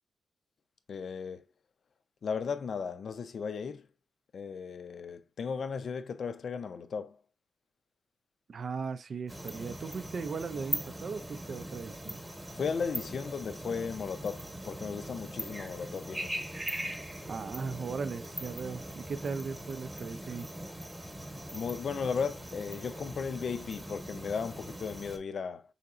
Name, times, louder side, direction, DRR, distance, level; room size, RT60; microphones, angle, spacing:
voice 1, 0.9-1.5 2.2-3.9 4.3-7.2 12.6-16.4 21.5-25.6, left 6 dB, 60° left, 0.5 m, -35 dB
voice 2, 8.5-12.2 17.3-20.5, right 5 dB, 55° right, 0.4 m, -38 dB
sound 1, 9.3-25.2, right 1 dB, 10° right, 1.0 m, -41 dB
5.7 x 3.9 x 2.4 m
wide cardioid pair, 115°, 0 cm